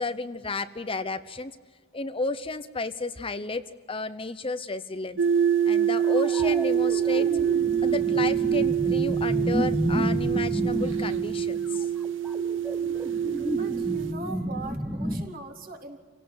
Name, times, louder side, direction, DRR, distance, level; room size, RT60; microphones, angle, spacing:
voice 1, 0.0-1.5 1.9-3.6 3.9-5.2 5.6-7.3 7.8-11.9, left 3 dB, 30° left, 11 dB, 0.9 m, -32 dB
sound 1, 5.2-14.1, right 8 dB, 85° right, 0.8 m, -25 dB
sound 2, 6.2-15.2, equal, 5° right, 1.1 m, -31 dB
voice 2, 13.4-16.0, right 2 dB, 50° right, 3 dB, 3.7 m, -41 dB
28.5 x 17.5 x 9.6 m, 1.5 s
head